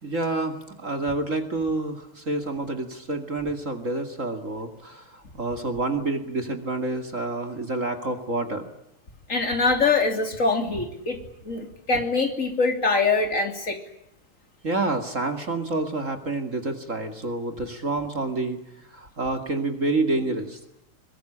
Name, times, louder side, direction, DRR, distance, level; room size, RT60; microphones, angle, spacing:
voice 1, 0.0-8.7 14.6-18.6 18.9-20.6, right 2 dB, 35° right, 6 dB, 2.6 m, -28 dB
voice 2, 9.3-13.8, left 3 dB, 35° left, 6 dB, 3.3 m, -24 dB
23.0 x 21.5 x 10.0 m, 0.82 s
omnidirectional pair, 2.4 m